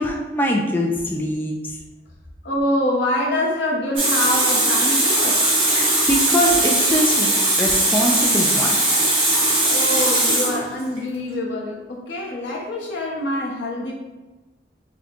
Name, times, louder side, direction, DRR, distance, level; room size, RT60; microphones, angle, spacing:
voice 1, 0.0-1.7 5.7-7.3 7.6-8.8, equal, 10° left, 0 dB, 0.3 m, -23 dB
voice 2, 2.4-5.4 9.7-13.9, left 1 dB, 85° left, -2 dB, 0.9 m, -25 dB
Water tap faucet, 4.0-11.0, right 1 dB, 30° right, 1.4 m, -19 dB
6.2 x 2.2 x 2.9 m, 1.1 s
head